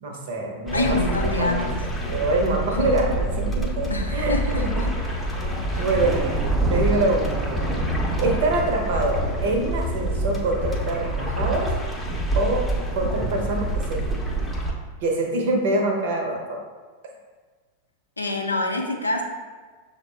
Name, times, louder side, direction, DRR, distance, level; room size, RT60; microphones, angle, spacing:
voice 1, 0.0-0.8 1.4-1.6 2.1-4.8 5.8-6.2 6.7-7.7 8.2-11.7 12.3-12.6 12.9-14.0 15.0-16.6, right 2 dB, 55° right, 2 dB, 0.7 m, -25 dB
voice 2, 0.7-1.9 3.9-5.3 5.7-5.9 18.2-19.2, left 2 dB, 80° left, 2 dB, 0.5 m, -27 dB
sound 1, 0.7-14.7, right 1 dB, 5° left, 0.6 m, -26 dB
Thunder / Rain, 4.1-14.0, right 6 dB, 30° right, 0.3 m, -37 dB
6.3 x 2.1 x 3.2 m, 1.4 s
figure-of-eight pair, 90°, 0 cm